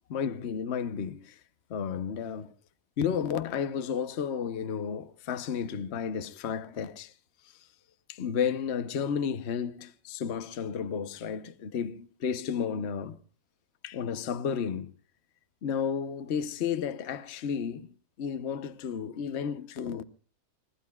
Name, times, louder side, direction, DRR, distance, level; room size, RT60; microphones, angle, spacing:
voice 1, 0.1-1.4 1.7-2.5 3.0-7.1 8.1-13.2 13.8-14.9 15.6-17.9 18.2-20.0, left 7 dB, 50° left, 1.0 m, -32 dB
28.0 x 20.5 x 2.3 m
omnidirectional pair, 1.7 m